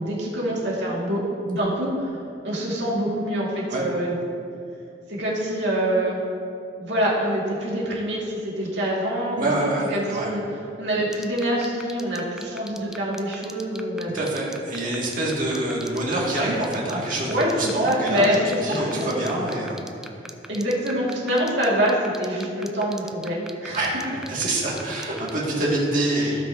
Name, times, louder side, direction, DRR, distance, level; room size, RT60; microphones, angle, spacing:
voice 1, 0.0-2.1 2.4-4.2 5.1-6.2 6.8-10.4 10.8-14.1 17.3-19.1 20.5-23.8 26.2-26.4, equal, 85° right, -5 dB, 2.3 m, -25 dB
voice 2, 9.3-10.3 14.1-18.4 18.6-20.2 23.7-23.9 24.3-26.3, right 1 dB, 50° right, -5 dB, 2.4 m, -26 dB
sound 1, 11.1-25.3, right 1 dB, 5° right, 0.3 m, -38 dB
17.0 x 5.8 x 2.9 m, 2.5 s
head